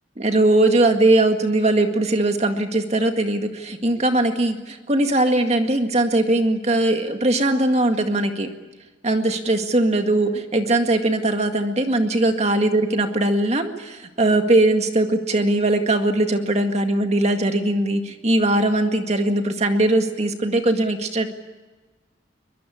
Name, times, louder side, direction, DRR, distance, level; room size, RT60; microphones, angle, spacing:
voice 1, 0.2-8.5 9.0-21.3, right 2 dB, 35° right, 6 dB, 2.0 m, -20 dB
24.0 x 21.5 x 8.7 m, 1.2 s
head